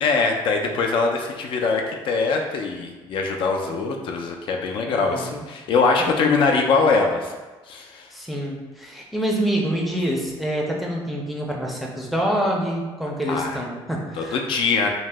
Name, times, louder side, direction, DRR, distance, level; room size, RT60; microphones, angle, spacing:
voice 1, 0.0-7.4 7.7-8.1 13.3-13.6 14.2-14.9, left 4 dB, 60° left, 2 dB, 0.3 m, -22 dB
voice 2, 4.9-5.4 6.1-6.5 8.1-14.4, right 1 dB, ahead, -2 dB, 0.5 m, -26 dB
2.7 x 2.0 x 3.3 m, 1.2 s
cardioid pair, 105°, 10 cm